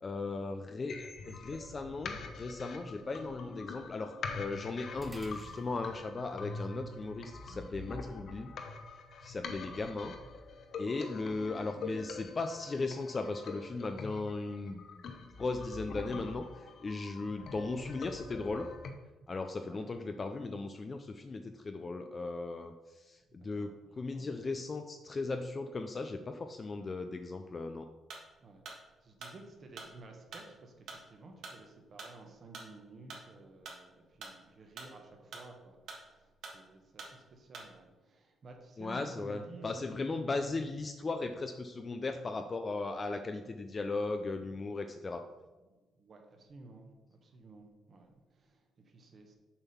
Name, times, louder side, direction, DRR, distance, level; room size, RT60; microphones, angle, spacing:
voice 1, 0.0-8.5 9.2-10.1 10.8-14.8 15.4-16.4 16.8-18.7 19.3-27.9 38.8-45.2, left 3 dB, 30° left, 7 dB, 0.4 m, -37 dB
sound 1, 0.9-18.9, left 4 dB, 60° left, 0.8 m, -45 dB
sound 2, 5.0-13.6, right 2 dB, ahead, 1.0 m, -58 dB
voice 2, 17.3-17.7 19.6-19.9 23.3-24.6 28.4-40.4 45.6-49.3, right 2 dB, 40° right, 3 dB, 1.2 m, -54 dB
sound 3, 28.1-37.9, right 3 dB, 70° right, 1.7 m, -49 dB
7.1 x 3.7 x 5.7 m, 1.2 s
cardioid pair, 125°, 0 cm